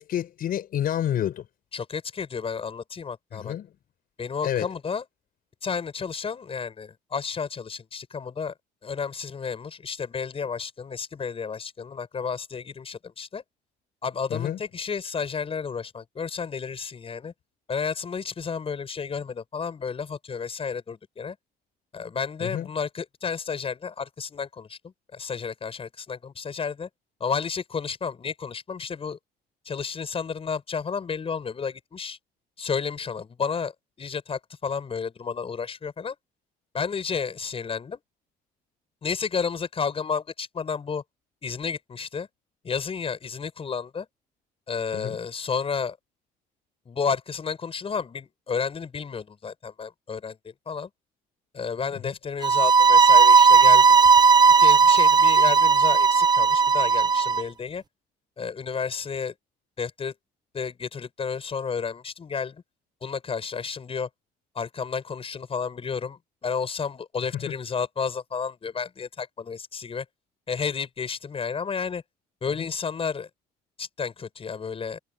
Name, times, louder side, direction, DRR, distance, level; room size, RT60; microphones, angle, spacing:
voice 1, 0.0-1.4 3.3-3.7 4.4-4.7 14.3-14.6 22.4-22.7 44.9-45.2 67.3-67.4, left 10 dB, 60° left, 5.7 m, -28 dB
voice 2, 1.7-3.6 4.2-5.0 5.6-8.5 8.8-13.4 14.0-17.3 17.7-21.4 21.9-26.9 27.2-29.2 29.7-32.2 32.6-33.7 34.0-36.2 36.7-38.0 39.0-41.0 41.4-42.3 42.6-44.1 44.7-46.0 46.9-50.9 51.5-54.0 54.6-57.8 58.4-59.3 59.8-60.1 60.5-62.6 63.0-64.1 64.6-70.1 70.5-72.0 72.4-73.3 73.8-75.0, left 6 dB, 35° left, 7.3 m, -31 dB
sound 1, 52.4-57.4, right 5 dB, 25° right, 1.0 m, -16 dB
cardioid pair, 110°, 17 cm